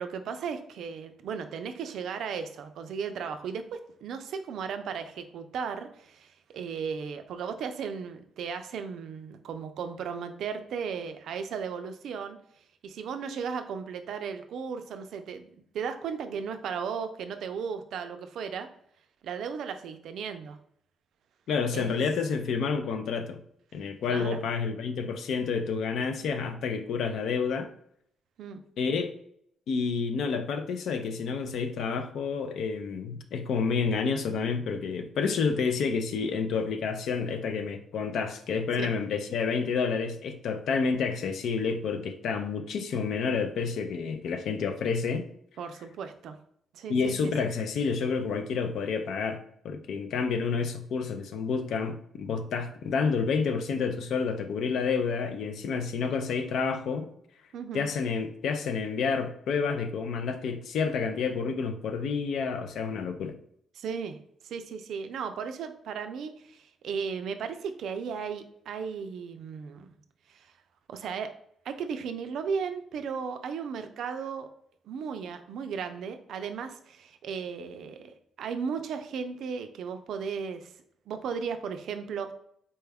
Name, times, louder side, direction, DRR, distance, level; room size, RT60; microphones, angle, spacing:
voice 1, 0.0-12.4 12.8-18.7 19.2-20.6 21.7-21.9 24.1-24.4 28.4-28.6 38.8-38.9 45.6-46.4 46.7-47.5 57.5-57.9 63.7-64.2 64.4-69.9 70.3-70.5 70.9-71.3 71.6-74.5 74.9-80.7 81.1-82.3, right 6 dB, 70° right, 8 dB, 0.4 m, -35 dB
voice 2, 21.5-23.4 23.7-27.7 28.8-29.1 29.7-45.3 46.9-57.1 57.7-63.4, left 5 dB, 65° left, 7 dB, 0.4 m, -29 dB
4.2 x 2.3 x 3.4 m, 0.70 s
cardioid pair, 145°, 0 cm